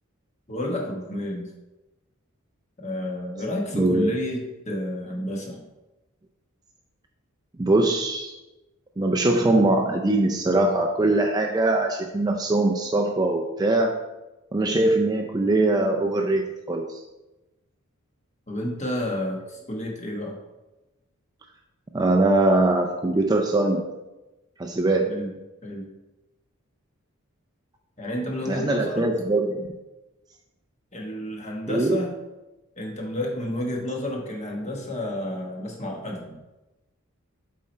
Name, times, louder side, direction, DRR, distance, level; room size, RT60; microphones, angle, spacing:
voice 1, 0.5-1.5 2.8-5.7 18.5-20.4 25.0-25.3 25.6-25.9 28.0-29.1 30.9-32.1 32.8-36.4, left 1 dB, 30° left, 1 dB, 1.2 m, -30 dB
voice 2, 3.7-4.1 7.6-8.3 9.0-13.9 14.5-17.0 21.9-23.8 24.6-25.1 28.5-29.7 31.7-32.0, right 2 dB, 20° right, 2 dB, 0.4 m, -22 dB
7.4 x 4.3 x 4.4 m, 1.0 s
head